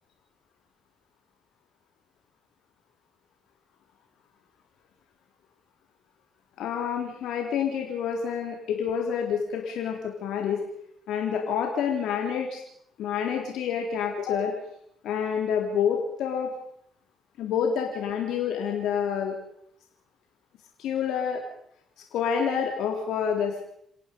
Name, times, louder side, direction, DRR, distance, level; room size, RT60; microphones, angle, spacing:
voice 1, 6.6-10.6 11.1-12.6 13.0-14.5 15.0-16.5 17.4-19.4 20.8-21.4 22.1-23.6, left 7 dB, 70° left, 1 dB, 3.6 m, -28 dB
29.0 x 17.5 x 5.4 m, 0.72 s
hypercardioid pair, 50°, 0 cm